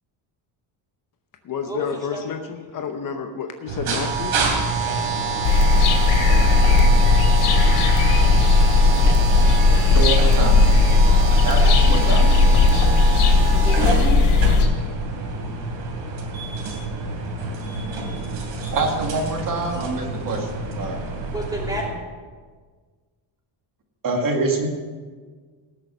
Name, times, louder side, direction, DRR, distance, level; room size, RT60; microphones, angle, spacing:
voice 1, 1.4-4.4, left 6 dB, 40° left, 5 dB, 0.9 m, -30 dB
sound 1, 3.7-21.9, right 4 dB, 75° right, 3.1 m, -27 dB
sound 2, 5.4-14.7, left 3 dB, 85° left, 2.8 m, -16 dB
voice 2, 9.9-10.8 11.4-12.2 18.7-21.0 24.0-24.7, right 3 dB, 40° right, 2 dB, 2.1 m, -25 dB
voice 3, 11.3-12.4 13.5-14.8 21.3-21.9, right 1 dB, 5° right, -2 dB, 2.8 m, -31 dB
18.5 x 6.8 x 6.2 m, 1.5 s
cardioid pair, 150°, 50 cm